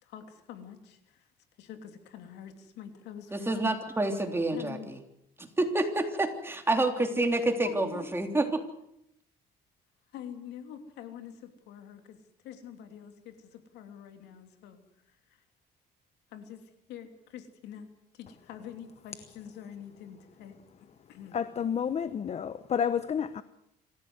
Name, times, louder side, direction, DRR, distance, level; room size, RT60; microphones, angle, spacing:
voice 1, 0.0-1.3 1.6-3.7 4.5-4.9 7.6-8.1 10.1-14.8 15.1-15.4 16.3-21.4, left 9 dB, 85° left, 7 dB, 3.0 m, -46 dB
voice 2, 3.3-5.0 5.4-8.6, right 2 dB, 15° right, 4 dB, 3.3 m, -28 dB
voice 3, 21.3-23.4, left 7 dB, 40° left, 14 dB, 0.9 m, -30 dB
26.0 x 15.5 x 8.0 m, 0.80 s
cardioid pair, 110°, 17 cm